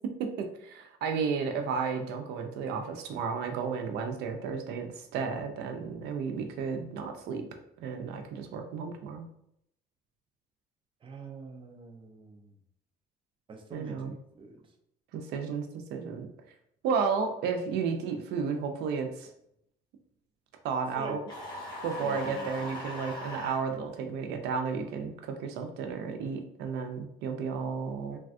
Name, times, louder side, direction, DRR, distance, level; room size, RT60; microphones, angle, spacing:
voice 1, 0.2-7.4 7.8-9.3 13.7-14.1 15.1-16.3 16.8-19.3 20.6-21.2 21.8-28.2, right 5 dB, 80° right, 5 dB, 0.4 m, -33 dB
voice 2, 11.0-12.5 13.5-14.7 20.9-21.2 22.0-22.5, right 3 dB, 30° right, 2 dB, 0.5 m, -44 dB
sound 1, 21.3-23.6, left 1 dB, 25° left, 1.1 m, -39 dB
3.3 x 2.2 x 2.5 m, 0.73 s
cardioid pair, 110°, 17 cm